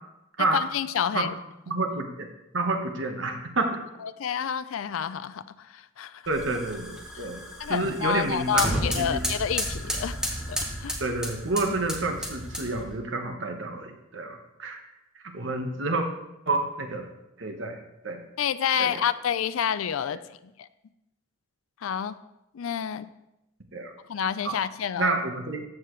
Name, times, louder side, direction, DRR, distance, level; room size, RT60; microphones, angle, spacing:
voice 1, 0.4-1.3 4.0-6.2 7.6-10.2 10.5-11.0 18.4-20.2 21.8-22.2 22.5-23.1 24.1-25.2, left 8 dB, 85° left, 14 dB, 0.4 m, -29 dB
voice 2, 1.7-2.3 2.5-3.8 6.3-7.4 7.7-9.3 11.0-14.8 15.2-16.1 16.5-17.1 17.4-17.8 18.0-18.2 18.8-19.0 20.1-20.2 23.7-23.9 24.4-24.6 25.0-25.6, right 2 dB, 65° right, 4 dB, 1.3 m, -29 dB
sound 1, 6.2-12.9, equal, 5° right, 1.4 m, -33 dB
13.5 x 7.4 x 3.2 m, 0.90 s
head